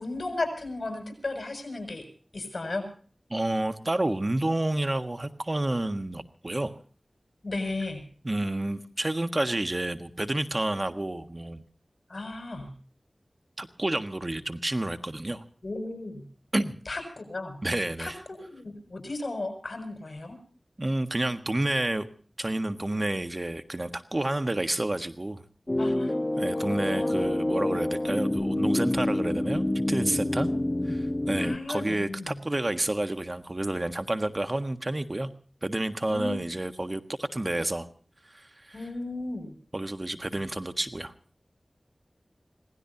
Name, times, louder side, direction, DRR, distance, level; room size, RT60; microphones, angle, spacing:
voice 1, 0.0-2.0 2.3-2.9 7.4-8.0 12.1-12.7 15.6-16.2 16.9-17.6 18.0-20.4 25.8-26.2 26.6-27.2 30.5-30.6 31.3-32.4 36.1-36.4 38.7-39.5 40.3-40.4, left 2 dB, 60° left, 6 dB, 7.1 m, -35 dB
voice 2, 3.3-6.7 8.2-11.6 13.6-15.4 16.5-16.8 17.6-18.2 20.8-22.1 22.4-25.4 26.4-30.5 30.9-35.3 35.6-37.9 38.2-38.8 39.7-41.1, right 1 dB, 40° right, 8 dB, 1.5 m, -30 dB
sound 1, 25.7-31.6, left 1 dB, 30° left, 1.3 m, -27 dB
26.5 x 18.5 x 2.8 m, 0.43 s
wide cardioid pair, 45°, 0 cm